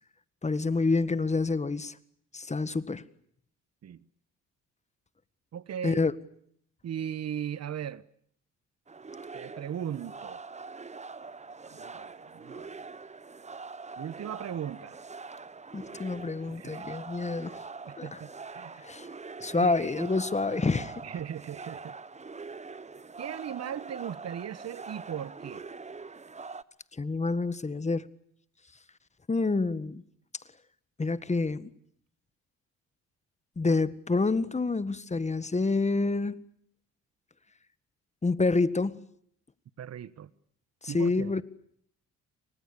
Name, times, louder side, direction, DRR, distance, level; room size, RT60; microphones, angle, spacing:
voice 1, 0.4-1.9 2.3-3.0 5.8-6.1 15.7-17.6 18.0-18.2 18.8-19.1 19.4-20.9 27.0-28.1 29.3-30.0 31.0-31.7 33.6-36.4 38.2-39.0 40.8-41.4, left 3 dB, 20° left, 1.7 m, -28 dB
voice 2, 5.5-6.0 6.8-8.0 9.3-10.4 11.6-12.8 14.0-15.0 16.5-16.9 17.8-18.8 19.5-20.1 21.0-22.0 23.2-25.6 39.8-40.3 40.9-41.3, right 9 dB, 60° right, 1.3 m, -38 dB
sound 1, 8.9-26.6, right 4 dB, 25° right, 1.2 m, -43 dB
30.0 x 25.0 x 6.9 m
cardioid pair, 90°, 30 cm